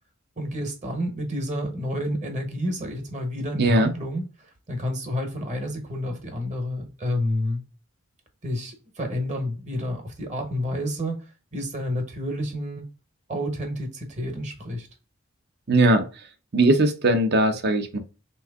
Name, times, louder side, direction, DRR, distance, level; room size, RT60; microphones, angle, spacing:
voice 1, 0.4-4.2 4.7-7.6 8.4-11.2 11.5-12.8 13.3-14.9, left 1 dB, 35° right, 1.1 m, -29 dB
voice 2, 3.6-3.9 15.7-16.1 16.5-18.0, right 1 dB, 55° right, 0.7 m, -19 dB
3.6 x 3.1 x 3.5 m
head